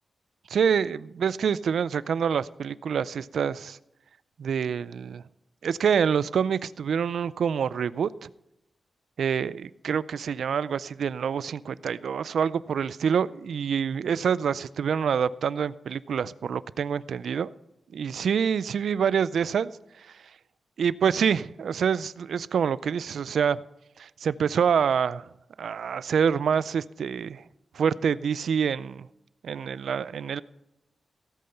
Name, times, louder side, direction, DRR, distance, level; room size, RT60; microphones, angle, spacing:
voice 1, 0.5-3.8 4.4-5.2 5.6-8.3 9.2-17.5 17.9-19.7 20.8-23.6 24.0-25.2 25.6-27.4 27.7-29.1 29.4-30.4, right 7 dB, 85° right, 18 dB, 0.4 m, -26 dB
17.0 x 8.5 x 5.7 m, 0.88 s
wide cardioid pair, 125°, 0 cm